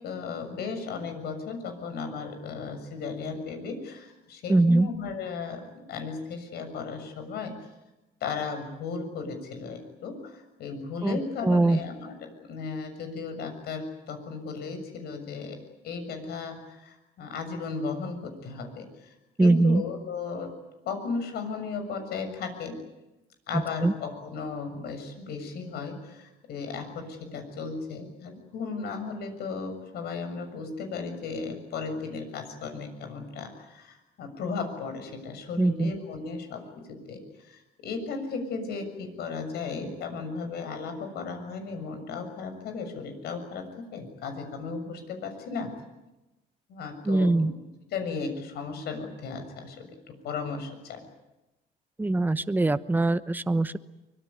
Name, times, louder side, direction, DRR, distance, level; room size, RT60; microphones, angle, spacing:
voice 1, 0.0-7.6 8.2-15.6 15.8-19.1 19.4-20.5 20.9-22.8 23.5-36.6 36.9-43.7 43.9-45.7 46.7-47.5 47.9-49.9 50.2-51.0, left 4 dB, 70° left, 7 dB, 7.0 m, -35 dB
voice 2, 4.5-4.9 11.0-11.8 19.4-19.8 23.8-23.9 35.6-35.9 47.1-47.5 52.0-53.8, right 2 dB, 10° right, 13 dB, 1.0 m, -22 dB
24.5 x 22.0 x 9.7 m, 1.0 s
cardioid pair, 110°, 17 cm